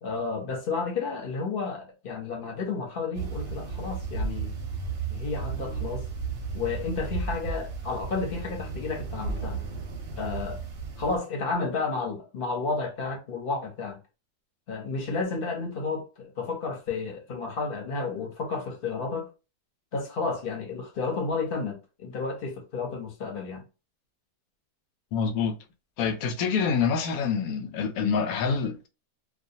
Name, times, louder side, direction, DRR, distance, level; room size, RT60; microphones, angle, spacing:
voice 1, 0.0-4.5 5.1-6.1 6.5-9.7 10.2-10.6 11.0-14.0 14.7-19.3 19.9-23.6, left 4 dB, 45° left, 0.8 m, -31 dB
sound 1, 3.1-11.2, right 4 dB, 55° right, 0.7 m, -34 dB
voice 2, 25.1-25.6 26.0-28.9, left 6 dB, 80° left, 1.0 m, -26 dB
2.3 x 2.3 x 2.7 m
omnidirectional pair, 1.5 m